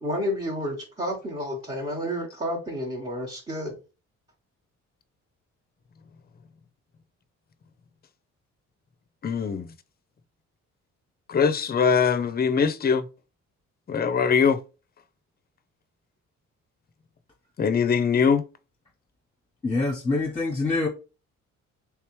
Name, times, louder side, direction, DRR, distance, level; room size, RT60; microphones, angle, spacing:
voice 1, 0.0-3.8, equal, 20° right, 1.1 m, -30 dB
voice 2, 9.2-9.7 11.3-13.0 13.9-14.6 17.6-18.4, left 6 dB, 30° left, 0.5 m, -22 dB
voice 3, 19.6-20.9, left 3 dB, 15° left, 1.0 m, -25 dB
3.3 x 3.2 x 3.1 m
cardioid pair, 90°, 30 cm